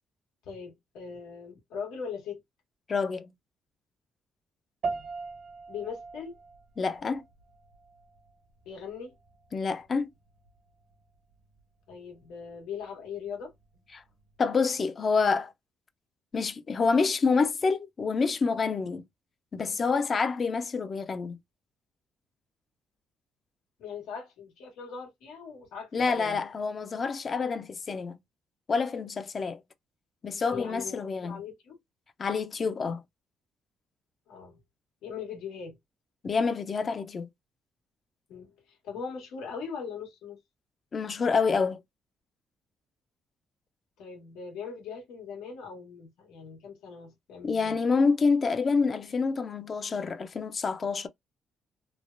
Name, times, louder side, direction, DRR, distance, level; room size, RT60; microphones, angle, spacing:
voice 1, 0.4-2.4 5.7-6.4 8.6-9.1 11.9-13.5 23.8-26.4 30.5-31.8 34.3-34.6 35.0-35.8 38.3-40.4 44.0-47.8, left 6 dB, 90° left, 1.4 m, -40 dB
voice 2, 2.9-3.3 6.8-7.2 9.5-10.1 14.4-15.5 16.3-19.0 19.5-21.4 25.9-28.2 28.7-29.6 30.2-31.4 32.2-33.0 36.2-37.3 40.9-41.8 47.4-51.1, left 4 dB, 40° left, 0.5 m, -27 dB
sound 1, 4.8-14.4, right 4 dB, 60° right, 0.8 m, -43 dB
3.2 x 2.1 x 2.5 m
cardioid pair, 90°, 0 cm